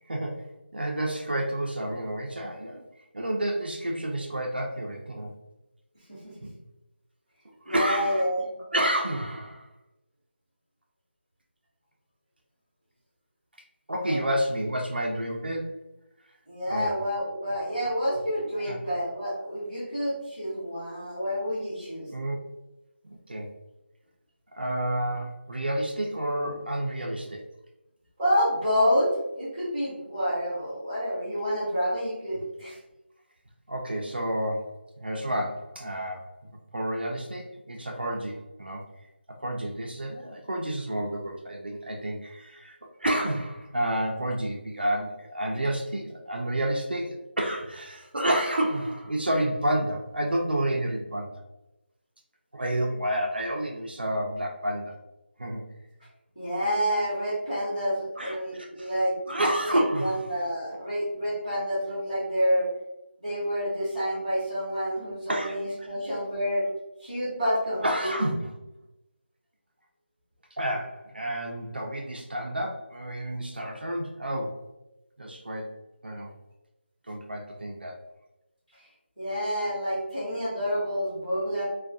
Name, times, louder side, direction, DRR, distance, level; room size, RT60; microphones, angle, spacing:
voice 1, 0.1-2.9 3.1-5.3 6.4-6.5 7.7-8.2 8.7-9.7 13.9-15.8 16.7-16.9 18.7-18.8 22.1-22.4 23.3-23.5 24.5-27.4 33.7-38.8 39.4-51.3 52.5-54.9 55.4-55.6 58.2-58.9 59.3-60.2 65.3-65.9 67.8-68.5 70.6-74.6 75.2-75.7 76.0-76.3 77.1-78.0, right 1 dB, 55° right, 0 dB, 0.5 m, -30 dB
voice 2, 7.6-8.4 14.0-14.2 16.5-22.1 26.4-26.5 28.2-32.8 56.3-59.1 59.7-62.7 63.2-66.6 67.0-68.2 79.2-81.6, equal, ahead, -13 dB, 0.8 m, -28 dB
2.3 x 2.2 x 2.5 m, 0.92 s
figure-of-eight pair, 180°, 6 cm